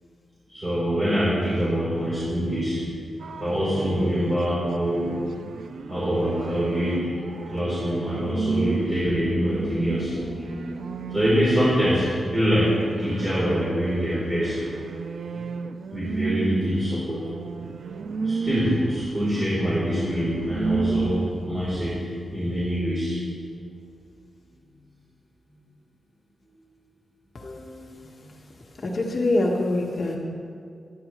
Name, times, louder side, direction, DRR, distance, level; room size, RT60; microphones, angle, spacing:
voice 1, 0.5-2.9 3.3-5.2 5.9-7.1 7.5-14.6 15.9-17.3 18.2-23.2, equal, 15° right, -10 dB, 3.7 m, -25 dB
sound 1, 3.2-8.9 9.6-11.7 12.1-21.5, right 4 dB, 90° right, 0.5 m, -33 dB
voice 2, 27.3-28.0 28.8-30.2, left 2 dB, 45° left, -2 dB, 1.5 m, -25 dB
27.0 x 10.0 x 3.2 m, 2.3 s
wide cardioid pair, 175°, 0 cm